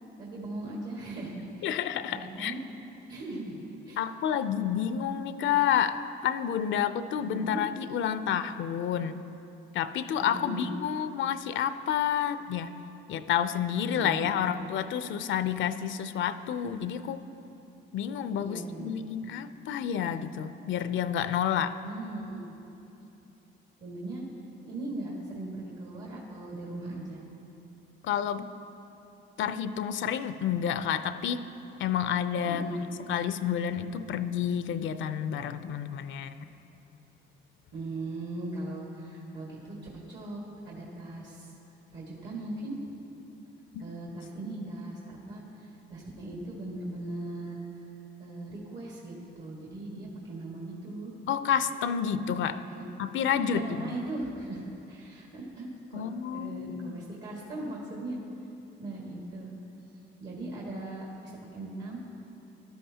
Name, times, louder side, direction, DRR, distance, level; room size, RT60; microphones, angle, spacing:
voice 1, 0.2-1.7 2.1-2.6 3.1-3.6 3.9-4.0 7.2-7.6 10.2-10.7 13.9-14.4 18.4-18.9 21.8-22.6 23.8-24.2 24.6-27.2 32.4-32.8 37.7-39.8 40.1-41.5 41.9-42.8 43.8-47.6 48.2-51.1 52.7-52.8 53.4-54.6 54.9-56.0 56.3-58.2 58.8-59.5 60.2-62.0, right 2 dB, 65° right, -4 dB, 1.9 m, -39 dB
voice 2, 1.6-2.5 4.0-9.2 9.7-12.7 13.1-17.2 17.9-21.8 28.0-28.5 29.4-31.4 31.8-32.6 33.1-36.3 43.7-43.8 44.1-44.2 51.3-52.6 53.0-54.0 55.9-57.0, left 9 dB, 75° left, 12 dB, 0.5 m, -29 dB
15.0 x 12.0 x 2.8 m, 2.9 s
cardioid pair, 90°, 20 cm